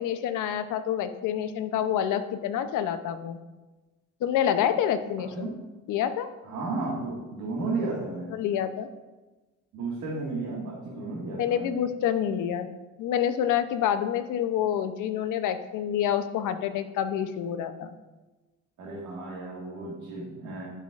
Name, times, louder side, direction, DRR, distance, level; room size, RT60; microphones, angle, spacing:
voice 1, 0.0-3.4 4.2-5.5 5.9-6.3 8.3-8.9 11.4-12.7 13.0-17.9, left 9 dB, 85° left, 10 dB, 0.6 m, -27 dB
voice 2, 6.4-8.4 9.7-11.8 18.8-20.7, right 3 dB, 80° right, -6 dB, 1.7 m, -33 dB
11.5 x 5.6 x 2.4 m, 1.2 s
cardioid pair, 90°, 30 cm